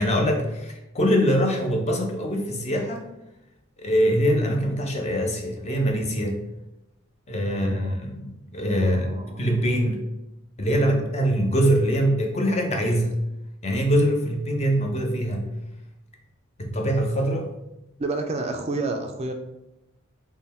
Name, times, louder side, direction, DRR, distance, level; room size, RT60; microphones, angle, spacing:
voice 1, 0.0-3.0 3.8-6.3 7.3-10.0 10.6-13.1 13.6-15.5 16.6-17.5, equal, 35° left, 1 dB, 0.6 m, -23 dB
voice 2, 7.5-8.0 8.8-9.5 10.7-10.9 18.0-19.3, right 3 dB, 30° right, 4 dB, 0.3 m, -30 dB
3.5 x 2.2 x 4.1 m, 0.91 s
head